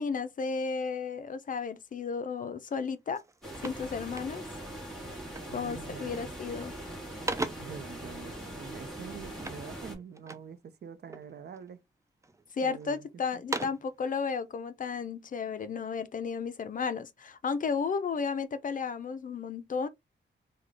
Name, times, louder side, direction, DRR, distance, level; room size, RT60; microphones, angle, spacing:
voice 1, 0.0-3.2 3.6-4.4 5.5-6.7 12.5-19.9, left 5 dB, 45° left, 0.5 m, -33 dB
sound 1, 2.7-2.9 3.1-4.7 5.3-5.7 6.0-6.5 6.8-7.9 9.4-10.6 11.1-11.7 12.2-12.9 13.3-14.0, right 2 dB, 15° right, 0.4 m, -39 dB
sound 2, 3.4-9.9, right 1 dB, ahead, 1.7 m, -42 dB
voice 2, 5.5-6.3 7.6-11.8 12.6-13.0, right 6 dB, 60° right, 0.6 m, -45 dB
3.8 x 2.2 x 3.2 m
wide cardioid pair, 140°, 19 cm